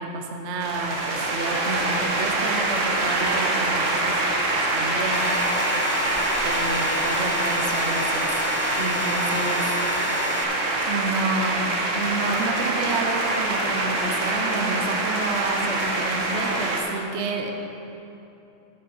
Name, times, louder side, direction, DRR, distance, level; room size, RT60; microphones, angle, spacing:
voice 1, 0.0-4.2 4.7-5.4 6.4-8.4 8.7-9.7 10.9-17.5, right 3 dB, 65° right, 3 dB, 1.0 m, -30 dB
sound 1, 0.6-16.8, right 2 dB, 85° right, 1.4 m, -25 dB
sound 2, 5.1-10.4, left 8 dB, 65° left, 0.3 m, -33 dB
9.2 x 8.7 x 4.3 m, 2.9 s
omnidirectional pair, 1.3 m